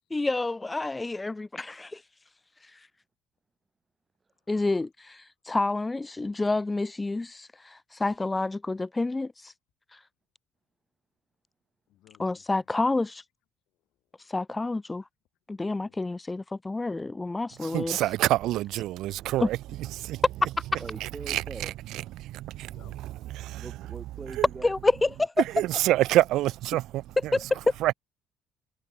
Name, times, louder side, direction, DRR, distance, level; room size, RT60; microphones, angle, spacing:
voice 1, 0.1-2.0 2.7-2.8 4.5-9.5 9.9-10.0 12.2-13.2 14.3-15.0 15.5-18.0 19.4-19.5 20.7-20.8 24.6-25.4 27.2-27.6, left 2 dB, 15° left, 1.0 m, -28 dB
voice 2, 11.9-12.6 15.9-16.0 19.0-19.3 22.7-23.0 27.6-28.0, left 16 dB, 80° left, 6.6 m, -59 dB
voice 3, 17.7-19.6 20.0-20.2 21.3-21.4 22.2-22.7 23.3-23.6 25.6-27.0 27.8-27.9, right 15 dB, 75° right, 0.5 m, -26 dB
voice 4, 20.8-21.8 23.6-24.7, right 4 dB, 20° right, 2.3 m, -42 dB
cardioid pair, 155°, 0 cm